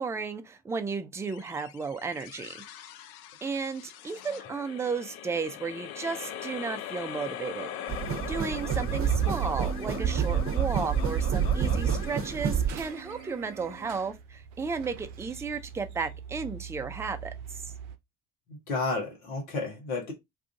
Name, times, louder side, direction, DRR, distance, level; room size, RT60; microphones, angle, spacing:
voice 1, 0.0-2.5 3.4-7.7 8.3-17.7, right 5 dB, 5° right, 0.3 m, -34 dB
sound 1, 1.2-13.9, left 10 dB, 60° left, 0.5 m, -42 dB
sound 2, 7.9-12.9, right 7 dB, 30° right, 0.8 m, -28 dB
sound 3, 12.7-18.0, right 8 dB, 65° right, 0.6 m, -44 dB
voice 2, 18.5-20.1, left 3 dB, 80° left, 1.1 m, -32 dB
2.7 x 2.4 x 3.4 m
figure-of-eight pair, 50°, 43 cm